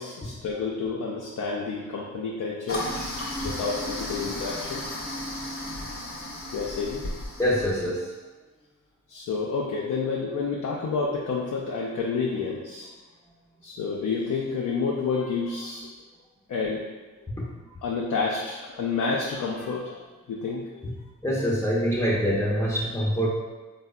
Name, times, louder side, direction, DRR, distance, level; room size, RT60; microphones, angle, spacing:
voice 1, 0.0-2.9 3.4-4.8 6.5-7.0 9.1-12.9 13.6-15.9 16.5-16.8 17.8-21.0, left 4 dB, 70° left, -3 dB, 0.4 m, -29 dB
Toilet flush, 2.7-7.9, left 1 dB, 45° left, 0.8 m, -34 dB
voice 2, 7.4-8.1 17.4-17.5 20.8-20.9 21.2-23.3, equal, 10° left, -6 dB, 0.5 m, -25 dB
3.4 x 2.0 x 2.3 m, 1.2 s
cardioid pair, 50°, 30 cm